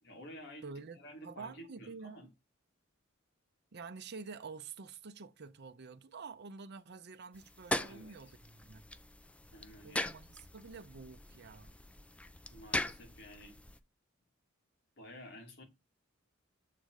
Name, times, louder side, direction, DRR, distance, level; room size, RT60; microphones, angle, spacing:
voice 1, 0.0-0.7 1.0-2.3 7.9-8.2 9.5-10.2 12.5-13.6 15.0-15.6, equal, 55° left, 2.6 m, -51 dB
voice 2, 0.6-2.3 3.7-8.8 9.8-11.7, right 4 dB, 55° right, 0.6 m, -48 dB
sound 1, 7.3-13.8, left 1 dB, 5° left, 0.4 m, -41 dB
7.5 x 3.9 x 4.8 m
head